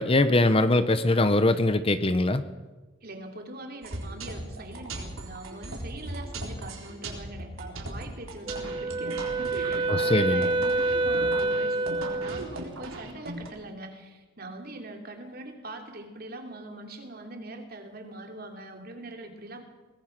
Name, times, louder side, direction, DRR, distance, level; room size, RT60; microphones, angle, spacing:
voice 1, 0.0-2.4 9.9-10.5, left 2 dB, 25° left, 11 dB, 0.8 m, -22 dB
voice 2, 3.0-19.6, right 2 dB, 45° right, 4 dB, 3.2 m, -42 dB
sound 1, 3.8-13.5, right 1 dB, 80° right, 4.2 m, -38 dB
Wind instrument woodwind instrument, 8.5-12.5, right 2 dB, 25° right, 0.8 m, -27 dB
23.0 x 19.5 x 6.0 m, 1.2 s
head